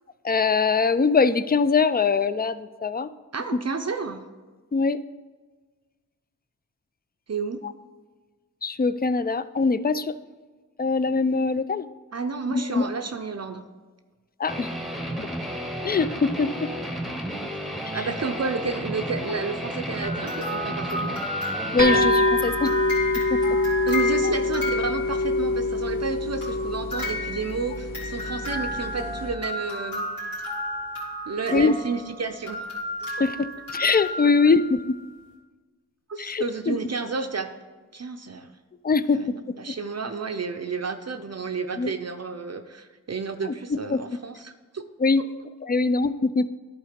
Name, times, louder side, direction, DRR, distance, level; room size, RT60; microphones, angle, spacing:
voice 1, 0.2-3.1 4.7-5.0 7.6-7.7 8.6-10.1 10.8-11.9 12.5-12.9 14.4-14.7 15.2-15.3 15.8-16.7 21.7-22.7 23.3-23.4 31.5-31.8 33.2-33.5 33.7-35.0 36.2-36.8 38.8-39.2 41.8-41.9 43.4-44.0 45.0-45.2 45.6-46.5, left 4 dB, 30° left, 15 dB, 0.3 m, -22 dB
voice 2, 3.3-4.3 7.3-7.6 12.1-13.7 17.4-17.5 17.9-21.2 23.9-30.1 31.3-32.7 34.2-34.3 36.1-37.5 37.9-38.5 39.1-44.8, right 4 dB, 50° right, 7 dB, 0.6 m, -31 dB
Guitar, 14.5-22.1, equal, ahead, 0.9 m, -32 dB
sound 1, 20.0-25.6 26.4-34.9, left 1 dB, 90° left, 2.8 m, -33 dB
sound 2, 21.8-29.3, left 2 dB, 70° left, 2.3 m, -25 dB
11.0 x 4.0 x 5.1 m, 1.4 s
cardioid pair, 45°, 34 cm